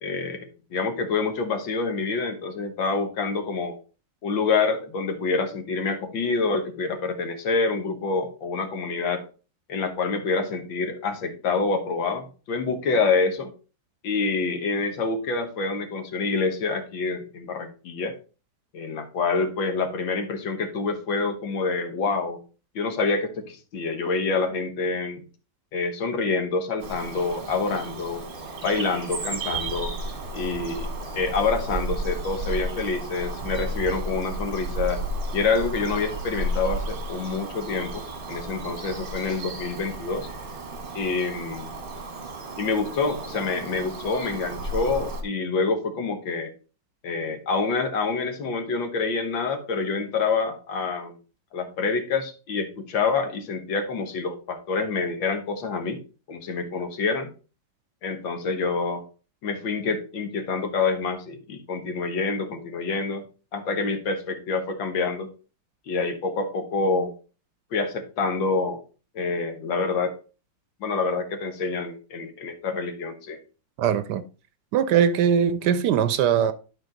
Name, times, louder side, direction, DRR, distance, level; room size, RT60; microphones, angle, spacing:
voice 1, 0.0-3.7 4.2-9.2 9.7-13.5 14.0-18.1 18.7-22.4 22.8-25.2 25.7-28.2 28.6-29.9 30.3-35.0 35.3-40.3 40.9-41.8 42.6-46.5 47.0-51.2 51.5-56.0 56.3-57.3 58.0-59.0 59.4-63.2 63.5-65.3 65.9-67.1 67.7-68.8 69.2-70.2 70.8-73.4, left 4 dB, 80° left, 2.0 m, -27 dB
Bird vocalization bird call bird song, 26.8-45.2, right 2 dB, 35° right, 1.1 m, -33 dB
voice 2, 73.8-74.2 74.7-76.5, right 8 dB, 70° right, 1.1 m, -21 dB
11.5 x 4.4 x 3.8 m
omnidirectional pair, 2.0 m